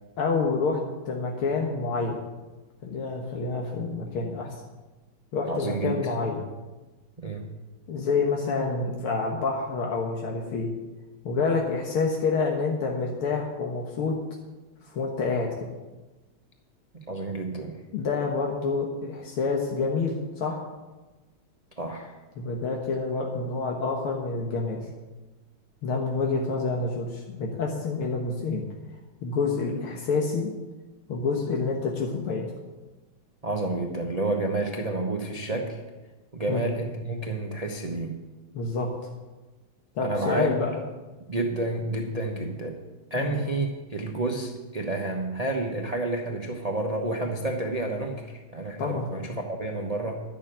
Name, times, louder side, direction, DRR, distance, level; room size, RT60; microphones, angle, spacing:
voice 1, 0.2-0.8 1.1-2.2 2.8-4.6 5.3-6.4 7.9-10.7 11.2-14.1 14.8-15.5 17.9-20.6 22.4-24.8 25.8-28.6 29.2-30.5 31.1-32.5 36.5-36.6 38.6-38.9 40.0-40.7 43.2-43.4 48.8-49.1, left 4 dB, 80° left, 0 dB, 2.2 m, -28 dB
voice 2, 5.5-6.1 7.2-7.5 16.9-17.8 21.8-22.2 33.4-35.8 36.3-38.1 40.0-40.5 41.3-42.8 43.1-50.2, right 2 dB, 25° right, 1 dB, 0.8 m, -30 dB
11.5 x 7.3 x 8.8 m, 1.2 s
omnidirectional pair, 2.3 m